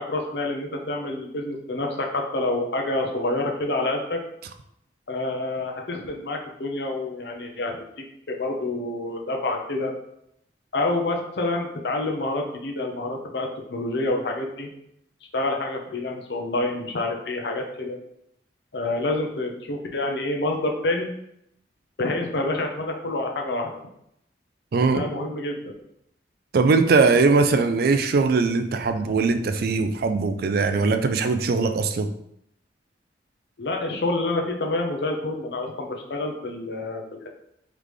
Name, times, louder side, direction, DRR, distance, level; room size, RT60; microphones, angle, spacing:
voice 1, 0.0-4.2 5.1-7.7 8.3-9.9 10.7-14.7 15.3-18.0 18.7-21.1 22.0-23.7 24.9-25.6 33.6-37.3, left 2 dB, 65° left, 1 dB, 0.7 m, -27 dB
voice 2, 24.7-25.0 26.5-32.1, right 4 dB, 55° right, 8 dB, 0.4 m, -20 dB
3.9 x 3.4 x 3.2 m, 0.76 s
head